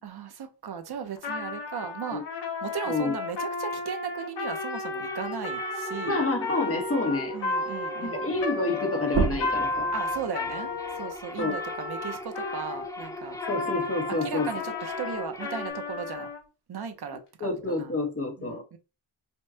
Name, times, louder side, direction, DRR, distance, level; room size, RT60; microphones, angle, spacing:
voice 1, 0.0-2.2 2.6-6.2 7.3-8.3 9.9-13.4 14.2-16.3 16.7-17.9 18.4-18.8, right 7 dB, 55° right, 0.7 m, -37 dB
Trumpet, 1.2-12.9 13.4-16.4, left 3 dB, 65° left, 0.8 m, -33 dB
sound 1, 3.7-15.7, equal, 10° left, 0.3 m, -40 dB
voice 2, 6.0-7.4 8.0-9.9 11.4-11.5 13.5-14.5 17.4-18.6, left 2 dB, 30° left, 1.0 m, -28 dB
sound 2, 9.1-14.3 14.7-16.5, right 5 dB, 90° right, 1.1 m, -35 dB
5.2 x 2.2 x 2.7 m
wide cardioid pair, 125°, 46 cm